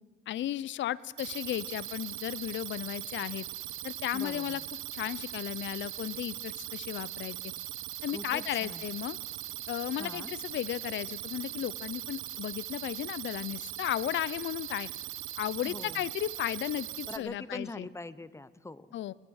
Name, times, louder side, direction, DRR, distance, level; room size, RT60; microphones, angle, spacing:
voice 1, 0.3-3.5 3.8-4.6 4.9-7.4 8.0-9.2 9.7-14.9 15.4-17.9 18.9-19.1, left 13 dB, 70° left, 21 dB, 0.6 m, -34 dB
sound 1, 1.2-17.2, right 14 dB, 90° right, 1.0 m, -40 dB
voice 2, 4.1-4.6 8.1-8.8 10.0-10.3 15.7-16.1 17.1-18.9, left 2 dB, 15° left, 16 dB, 0.7 m, -42 dB
21.0 x 19.5 x 6.4 m, 1.5 s
cardioid pair, 90°, 20 cm